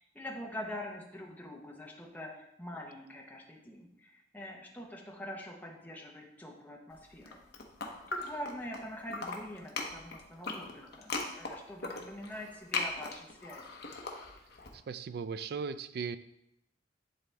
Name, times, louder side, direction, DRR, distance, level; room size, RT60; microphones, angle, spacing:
voice 1, 0.0-7.4 7.8-13.8, left 1 dB, 10° left, -1 dB, 0.9 m, -44 dB
sound 1, 7.1-8.8 9.1-14.7, left 3 dB, 60° left, 0.9 m, -39 dB
voice 2, 14.7-16.2, right 5 dB, 55° right, 13 dB, 0.3 m, -37 dB
10.5 x 4.0 x 3.4 m, 0.84 s
head